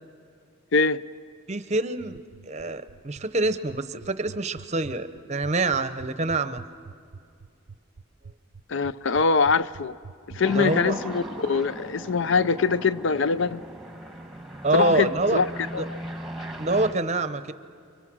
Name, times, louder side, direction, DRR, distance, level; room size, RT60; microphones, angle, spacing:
voice 1, 0.7-1.0 8.7-10.0 10.3-13.6 14.7-15.5 15.7-16.0, left 4 dB, 60° left, 16 dB, 0.5 m, -23 dB
voice 2, 1.5-6.6 10.5-11.0 14.6-15.4 15.8-15.9 16.6-17.5, right 2 dB, 30° right, 11 dB, 0.7 m, -26 dB
sound 1, 2.0-10.4, right 5 dB, 65° right, 0.5 m, -44 dB
sound 2, 10.4-16.9, right 1 dB, ahead, 1.3 m, -38 dB
30.0 x 24.0 x 6.1 m, 2.4 s
head